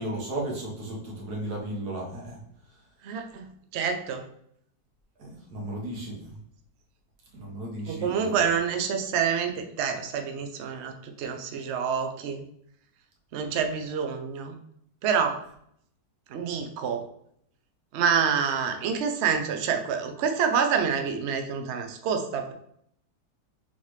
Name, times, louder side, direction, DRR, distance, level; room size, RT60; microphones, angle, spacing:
voice 1, 0.0-2.4 5.2-6.3 7.3-8.4, right 1 dB, 65° right, -2 dB, 1.7 m, -35 dB
voice 2, 3.0-4.3 7.9-12.4 13.3-14.6 15.0-15.4 16.3-17.0 17.9-22.5, right 6 dB, 85° right, 5 dB, 0.6 m, -27 dB
4.2 x 3.5 x 3.1 m, 0.69 s
omnidirectional pair, 1.9 m